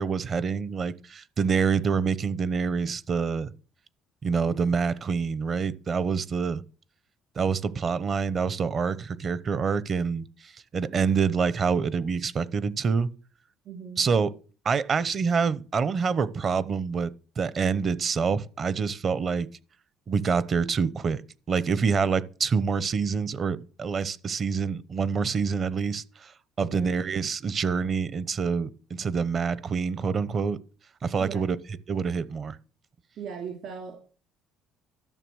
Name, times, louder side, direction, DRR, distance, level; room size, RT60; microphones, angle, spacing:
voice 1, 0.0-3.5 4.2-6.6 7.4-13.1 14.0-14.3 14.6-17.1 17.4-19.5 20.1-21.2 21.5-26.3 26.6-30.6 31.0-31.6 31.9-32.6, right 5 dB, 35° right, 0.9 m, -26 dB
voice 2, 13.6-14.0 26.6-26.9 31.2-31.4 33.2-34.0, right 6 dB, 60° right, 3.2 m, -38 dB
12.5 x 7.0 x 6.3 m
cardioid pair, 120°, 0 cm